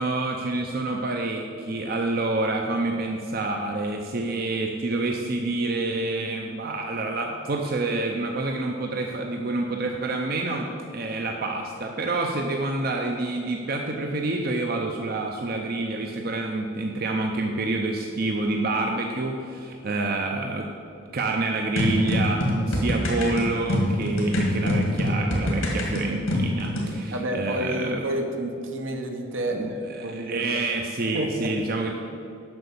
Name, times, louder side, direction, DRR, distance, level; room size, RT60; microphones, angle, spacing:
voice 1, 0.0-20.7 21.1-28.0 29.5-29.7 30.0-31.9, right 2 dB, 50° right, 2 dB, 0.6 m, -28 dB
sound 1, 21.8-26.9, left 1 dB, 90° left, 1.9 m, -25 dB
voice 2, 27.1-30.6 31.1-31.5, right 1 dB, 75° right, 3 dB, 1.1 m, -30 dB
7.8 x 5.9 x 6.9 m, 2.5 s
head